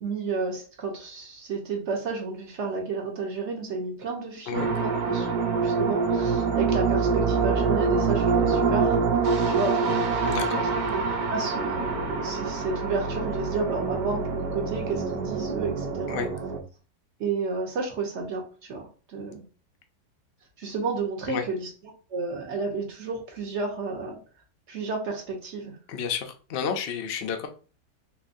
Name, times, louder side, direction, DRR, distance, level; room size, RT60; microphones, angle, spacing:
voice 1, 0.0-9.0 9.5-10.4 10.9-11.0 11.3-16.2 17.2-19.4 20.6-21.7 22.1-24.2 24.7-25.8, right 4 dB, 50° right, 1 dB, 1.1 m, -31 dB
sound 1, 4.5-16.6, right 5 dB, 85° right, 1.3 m, -25 dB
voice 2, 10.3-10.7 16.1-16.3 21.3-21.4 25.9-27.5, left 7 dB, 70° left, 5 dB, 0.6 m, -30 dB
3.8 x 3.2 x 2.6 m, 0.37 s
omnidirectional pair, 1.8 m